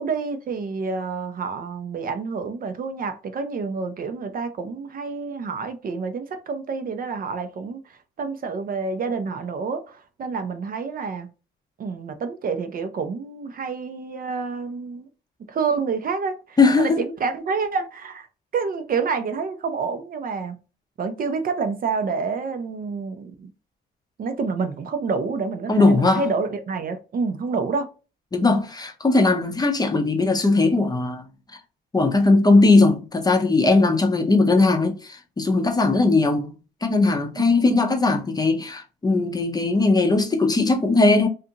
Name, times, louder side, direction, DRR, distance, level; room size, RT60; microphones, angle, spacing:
voice 1, 0.0-7.8 8.2-11.3 11.8-15.1 15.5-18.3 18.5-20.5 21.0-23.5 24.2-27.9 28.4-28.6 37.4-37.5, right 5 dB, 45° right, 0.5 m, -28 dB
voice 2, 16.6-17.0 25.7-26.3 28.3-31.2 31.9-36.5 36.8-41.3, left 3 dB, 20° left, 0.6 m, -19 dB
2.5 x 2.4 x 2.7 m
cardioid pair, 90°, 20 cm